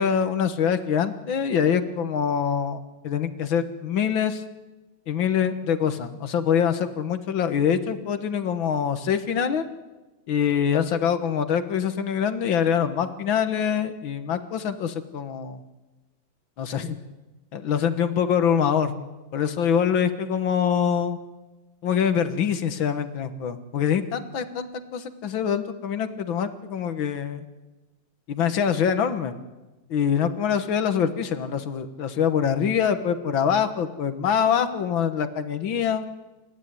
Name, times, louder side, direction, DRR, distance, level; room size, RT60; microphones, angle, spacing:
voice 1, 0.0-2.8 3.0-4.4 5.1-9.6 10.3-15.6 16.6-17.0 17.5-18.9 19.3-21.2 21.8-27.4 28.3-29.4 29.9-36.0, left 8 dB, 85° left, 10 dB, 2.1 m, -24 dB
28.5 x 14.5 x 9.3 m, 1.1 s
omnidirectional pair, 2.1 m